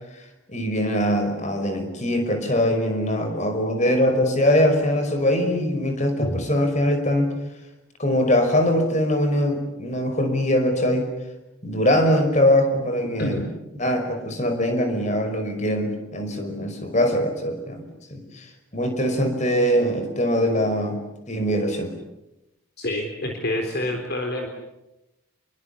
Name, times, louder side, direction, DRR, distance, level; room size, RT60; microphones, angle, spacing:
voice 1, 0.5-7.3 8.0-11.1 11.6-13.4 13.8-17.9 18.1-18.5 18.7-21.0 21.3-21.9, equal, 35° left, 7 dB, 5.4 m, -22 dB
voice 2, 22.8-24.5, left 1 dB, 50° left, 3 dB, 3.7 m, -27 dB
29.0 x 23.0 x 8.4 m, 0.93 s
head